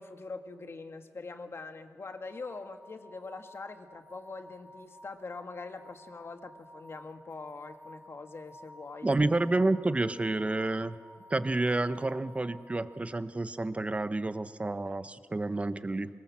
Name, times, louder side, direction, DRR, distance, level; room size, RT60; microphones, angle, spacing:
voice 1, 0.0-9.2, left 3 dB, 45° left, 7 dB, 1.7 m, -43 dB
sound 1, 2.1-13.0, equal, 40° right, 5.5 m, -54 dB
voice 2, 9.0-11.0 11.3-16.1, right 2 dB, 20° right, 12 dB, 0.8 m, -29 dB
24.5 x 22.5 x 7.4 m, 2.1 s
wide cardioid pair, 115°, 6 cm